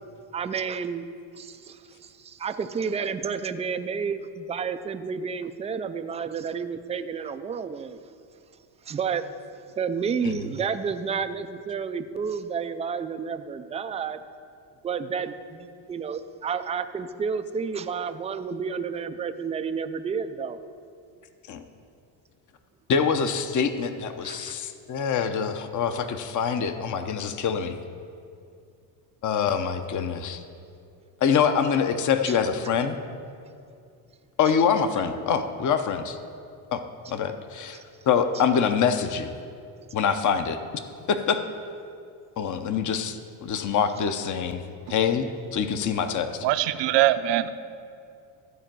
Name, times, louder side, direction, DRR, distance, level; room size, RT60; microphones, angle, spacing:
voice 1, 0.3-1.1 1.3-8.0 8.8-9.3 9.8-14.2 14.8-20.6 24.2-24.6 32.3-32.4 34.9-35.0 37.7-37.8, right 6 dB, 15° right, 9 dB, 0.3 m, -31 dB
voice 2, 22.9-27.8 29.2-30.4 31.2-33.0 34.4-36.2 36.7-36.8 37.1-37.8 38.1-39.3 39.9-40.6 41.1-41.4 42.4-44.6 44.9-46.5, left 7 dB, 40° left, 8 dB, 0.8 m, -25 dB
voice 3, 46.4-47.5, right 14 dB, 60° right, 12 dB, 0.7 m, -22 dB
13.5 x 4.4 x 7.6 m, 2.4 s
supercardioid pair, 90°, 49 cm